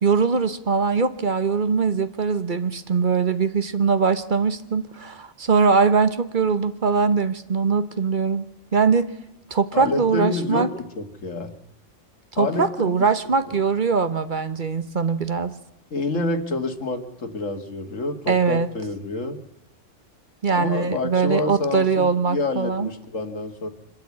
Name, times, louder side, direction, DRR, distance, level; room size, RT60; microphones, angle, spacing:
voice 1, 0.0-9.1 9.5-10.7 12.3-15.6 18.3-18.7 20.4-22.9, right 5 dB, 40° right, 11 dB, 1.1 m, -21 dB
voice 2, 9.7-10.7 11.0-11.5 12.4-13.1 15.9-19.4 20.5-23.7, left 3 dB, 75° left, 6 dB, 2.2 m, -28 dB
25.5 x 13.0 x 8.4 m, 0.91 s
omnidirectional pair, 1.3 m